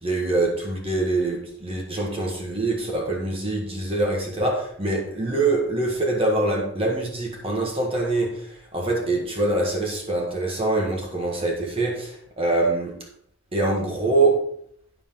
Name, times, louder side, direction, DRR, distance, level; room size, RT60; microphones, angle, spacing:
voice 1, 0.0-13.0 13.5-14.4, right 2 dB, 25° right, 1.4 m, -24 dB
9.2 x 6.3 x 3.8 m
head